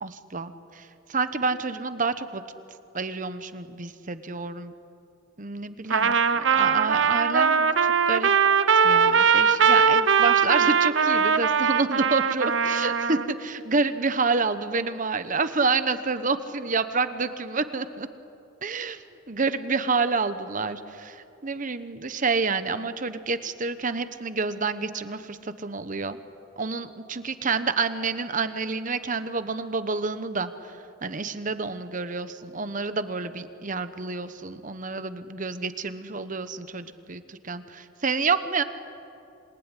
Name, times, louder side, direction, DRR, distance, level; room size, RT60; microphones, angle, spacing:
voice 1, 0.0-2.4 2.9-4.7 5.4-8.3 8.7-18.1 18.6-26.2 26.6-38.6, right 4 dB, 40° right, 11 dB, 1.0 m, -28 dB
Trumpet, 5.9-13.3, right 6 dB, 60° right, 0.9 m, -21 dB
27.0 x 19.5 x 9.9 m, 2.7 s
head